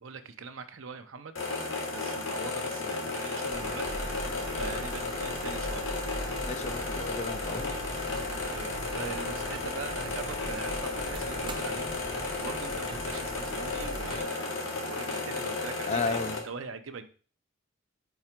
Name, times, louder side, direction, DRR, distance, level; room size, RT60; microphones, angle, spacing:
voice 1, 0.0-3.9 4.6-6.0 8.3-17.1, right 5 dB, 70° right, 8 dB, 0.6 m, -42 dB
sound 1, 1.4-16.4, left 3 dB, 70° left, 1.6 m, -34 dB
sound 2, 3.5-14.2, right 1 dB, 25° right, 0.6 m, -41 dB
voice 2, 6.4-7.7 15.9-16.4, left 4 dB, 35° left, 9 dB, 0.5 m, -34 dB
4.8 x 4.7 x 4.4 m, 0.40 s
head